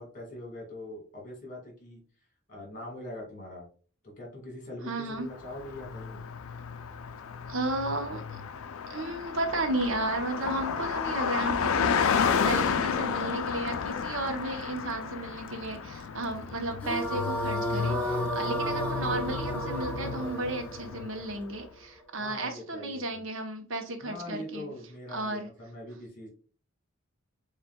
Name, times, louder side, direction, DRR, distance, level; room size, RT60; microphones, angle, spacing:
voice 1, 0.0-2.0 2.5-3.7 4.0-6.2 22.2-23.2 24.0-26.3, left 1 dB, 40° left, 0 dB, 1.7 m, -42 dB
voice 2, 4.8-5.3 7.5-8.4 8.9-24.7 25.1-25.5, right 2 dB, 70° right, 5 dB, 0.8 m, -33 dB
Car passing by, 5.4-21.4, left 6 dB, 85° left, 0.4 m, -32 dB
sound 1, 16.8-22.0, equal, 5° left, 0.9 m, -33 dB
6.9 x 2.4 x 2.3 m, 0.39 s
head